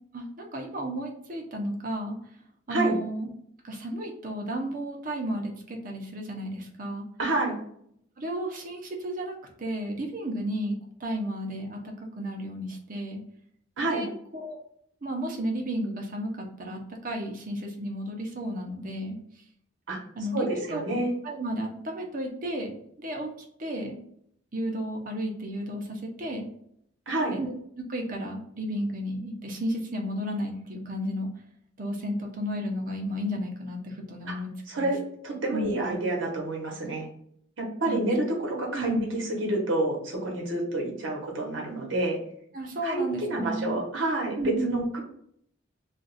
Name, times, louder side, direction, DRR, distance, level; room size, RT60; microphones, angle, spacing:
voice 1, 0.1-2.2 2.7-3.3 3.6-7.0 8.2-13.2 13.9-14.6 15.0-19.4 20.1-20.8 21.2-23.3 23.6-24.0 24.5-26.5 27.3-31.3 31.8-34.9 35.5-35.7 37.9-38.0 38.7-39.2 42.5-43.8 44.4-44.9, equal, 45° right, 1 dB, 0.7 m, -33 dB
voice 2, 7.2-7.6 13.8-14.0 19.9-20.0 20.3-21.1 27.1-27.4 34.3-34.4 34.7-35.0 35.2-37.1 37.6-42.2 42.8-45.0, right 2 dB, 70° right, -1 dB, 0.9 m, -28 dB
2.5 x 2.3 x 3.9 m, 0.69 s
head